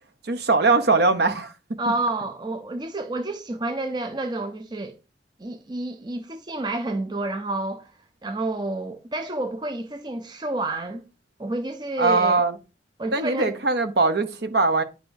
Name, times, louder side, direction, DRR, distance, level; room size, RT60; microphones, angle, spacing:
voice 1, 0.3-1.5 1.9-2.0 12.0-12.6 13.1-14.8, right 3 dB, 60° right, 0.8 m, -21 dB
voice 2, 1.8-4.9 5.4-7.9 8.2-11.0 11.4-12.4 13.0-13.5, right 2 dB, 25° right, 0.5 m, -29 dB
9.7 x 4.5 x 2.7 m
head